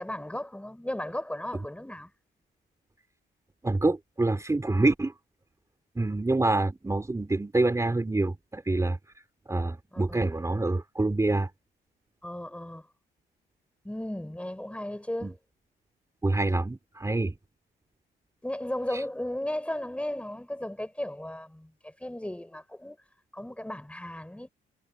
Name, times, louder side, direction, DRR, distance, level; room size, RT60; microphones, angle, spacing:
voice 1, 0.0-2.1 9.9-10.2 12.2-12.8 13.8-15.4 18.4-23.0 23.3-24.5, left 1 dB, 5° left, 5.0 m, -35 dB
voice 2, 3.6-5.1 5.9-9.0 9.5-11.5 15.2-15.3 16.2-17.3 18.9-19.0, right 2 dB, 15° right, 3.3 m, -26 dB
cardioid pair, 90°, 20 cm